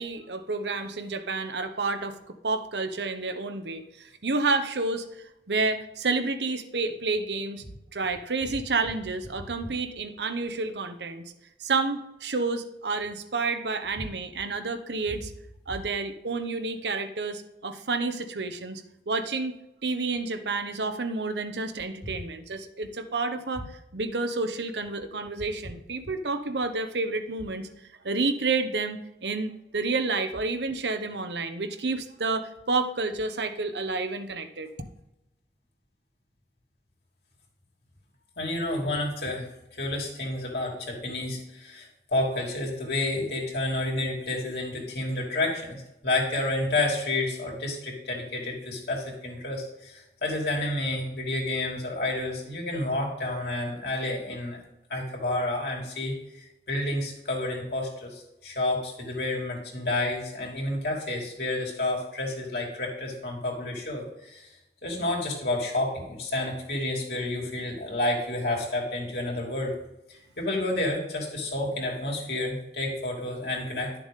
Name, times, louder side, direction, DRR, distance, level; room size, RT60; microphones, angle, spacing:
voice 1, 0.0-5.0 5.5-7.6 7.9-11.2 11.6-15.3 15.7-19.6 19.8-23.7 23.9-27.7 28.0-34.7, right 3 dB, 80° right, 7 dB, 1.0 m, -30 dB
voice 2, 38.4-54.6 54.9-64.5 64.8-69.7 70.1-74.0, left 2 dB, 70° left, -2 dB, 3.0 m, -30 dB
11.5 x 6.9 x 3.8 m, 0.90 s
head